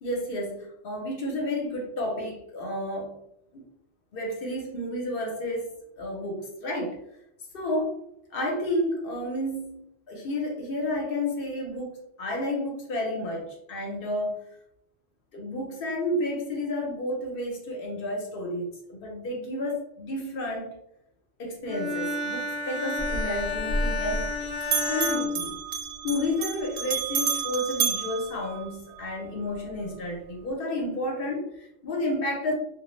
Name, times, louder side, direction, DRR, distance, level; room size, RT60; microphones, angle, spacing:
voice 1, 0.0-3.2 3.5-3.6 4.1-5.7 6.0-7.0 7.5-8.0 8.3-9.8 10.1-11.9 12.2-14.4 15.3-20.7 21.4-24.3 24.8-25.5 26.0-32.5, left 1 dB, 60° left, 1 dB, 0.7 m, -31 dB
Bowed string instrument, 21.7-26.2, left 3 dB, 80° left, 0.9 m, -31 dB
Bell, 23.0-24.4 24.6-29.1, right 5 dB, 90° right, 0.9 m, -30 dB
2.1 x 2.0 x 3.0 m, 0.78 s
omnidirectional pair, 1.3 m